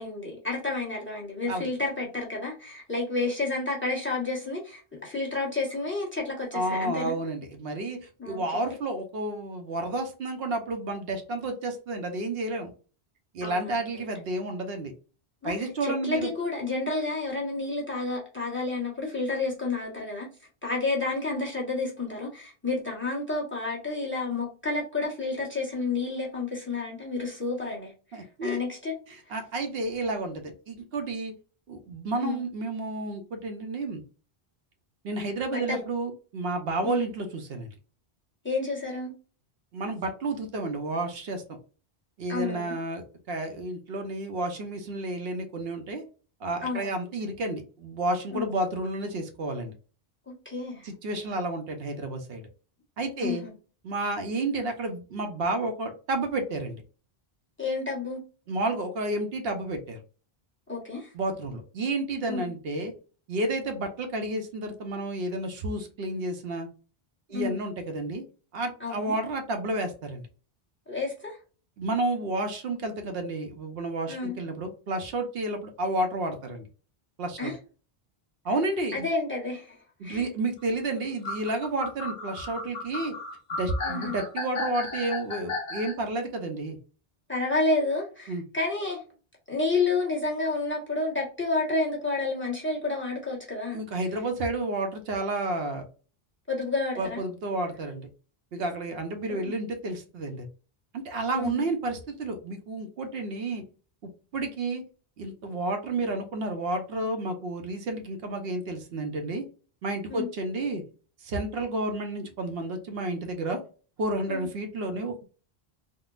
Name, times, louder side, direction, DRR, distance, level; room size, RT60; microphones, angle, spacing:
voice 1, 0.0-7.1 8.2-8.6 13.4-13.9 15.4-20.3 20.6-28.9 32.2-32.4 35.5-35.8 36.8-37.1 38.4-39.1 42.3-42.7 46.6-47.0 48.3-48.5 50.3-50.9 53.2-53.5 57.6-58.2 60.7-61.1 62.3-62.5 67.3-67.6 68.8-69.1 70.9-71.4 74.1-74.4 77.4-77.6 78.9-80.3 83.8-84.1 87.3-89.0 89.5-93.8 96.5-97.2 99.3-99.5 101.3-101.7 110.1-110.3 114.3-114.4, left 3 dB, 10° left, -1 dB, 1.0 m, -30 dB
voice 2, 6.5-12.7 13.3-14.9 15.4-16.3 28.1-28.6 29.1-31.3 31.7-34.0 35.0-37.7 39.7-41.4 42.2-46.0 46.4-49.7 50.8-52.5 53.0-53.4 53.8-56.8 58.5-60.0 61.1-62.9 63.3-66.7 67.3-68.2 68.5-70.3 71.8-76.6 77.2-77.5 78.4-79.1 80.0-83.1 83.6-86.8 88.3-88.4 93.7-95.8 97.0-98.1 98.5-100.5 100.9-103.6 104.3-104.8 105.2-109.4 109.8-110.8 111.2-113.6 114.0-115.2, right 2 dB, 75° right, 5 dB, 0.8 m, -31 dB
sound 1, 81.2-86.0, left 3 dB, 45° left, 0.9 m, -34 dB
3.7 x 2.1 x 2.3 m, 0.37 s
omnidirectional pair, 1.0 m